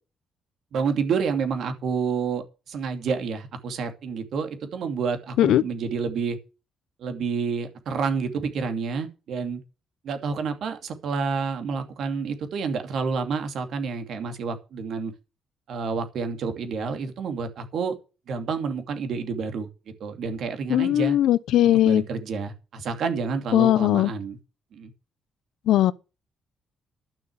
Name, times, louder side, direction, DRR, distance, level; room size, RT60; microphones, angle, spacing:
voice 1, 0.7-6.4 7.0-9.6 10.0-15.1 15.7-17.9 18.3-19.7 20.0-21.2 21.6-24.4 24.7-24.9, right 5 dB, 70° right, 2.7 m, -29 dB
voice 2, 20.7-22.0 23.5-24.1 25.7-25.9, left 13 dB, 80° left, 0.6 m, -19 dB
12.0 x 6.5 x 8.1 m
cardioid pair, 90°, 0 cm